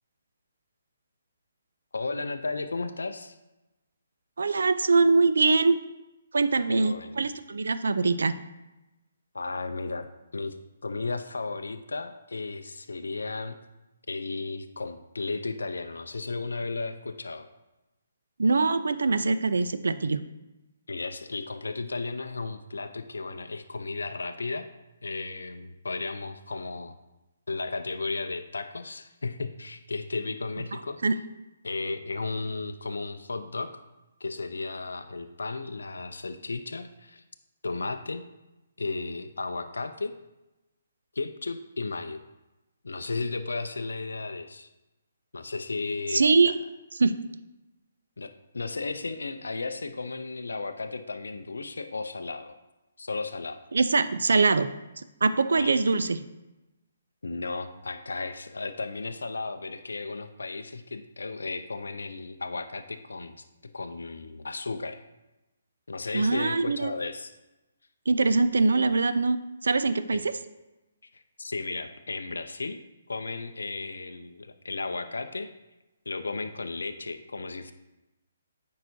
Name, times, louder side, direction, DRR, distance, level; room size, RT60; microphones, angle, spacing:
voice 1, 1.9-3.4 6.7-7.3 9.3-10.1 10.3-10.5 10.8-13.6 14.1-17.5 20.9-24.7 25.0-27.0 27.5-31.0 31.6-33.8 34.2-37.2 37.6-38.3 38.8-40.1 41.2-42.2 42.8-44.7 45.3-46.5 48.2-52.6 53.0-53.6 55.6-55.8 57.2-63.5 63.7-65.0 65.9-67.4 70.1-70.2 71.1-72.8 73.1-75.5 76.1-77.7, left 3 dB, 85° left, 8 dB, 0.4 m, -34 dB
voice 2, 4.4-5.8 6.3-8.3 18.4-20.2 31.0-31.2 46.1-46.6 47.0-47.1 53.7-54.7 55.2-56.2 66.1-66.9 68.1-69.4 69.6-70.3, right 3 dB, 80° right, 12 dB, 0.4 m, -23 dB
9.1 x 4.7 x 2.7 m, 1.0 s
hypercardioid pair, 145°, 0 cm